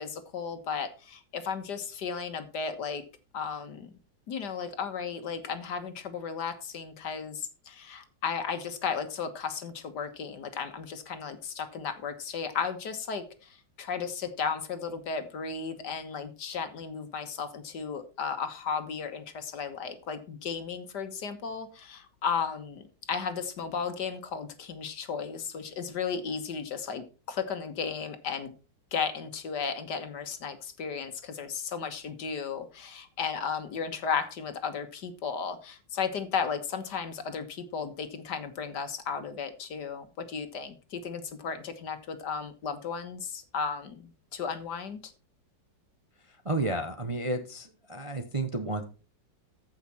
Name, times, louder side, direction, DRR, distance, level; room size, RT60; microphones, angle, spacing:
voice 1, 0.0-3.0 3.3-3.9 4.3-28.5 28.9-45.1, left 6 dB, 65° left, 9 dB, 1.8 m, -34 dB
voice 2, 46.3-48.8, right 2 dB, 25° right, 6 dB, 0.7 m, -32 dB
14.5 x 5.9 x 4.2 m, 0.33 s
omnidirectional pair, 2.0 m